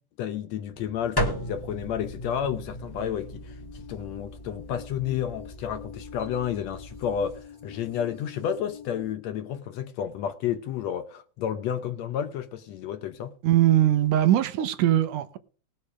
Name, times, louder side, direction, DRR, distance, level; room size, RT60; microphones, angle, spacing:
voice 1, 0.2-13.4, left 9 dB, 70° left, 1.8 m, -31 dB
sound 1, 0.7-9.2, left 6 dB, 45° left, 0.4 m, -47 dB
sound 2, 1.2-7.4, equal, 10° left, 1.0 m, -36 dB
voice 2, 13.4-15.4, right 12 dB, 85° right, 2.5 m, -21 dB
19.5 x 6.8 x 5.1 m
omnidirectional pair, 3.6 m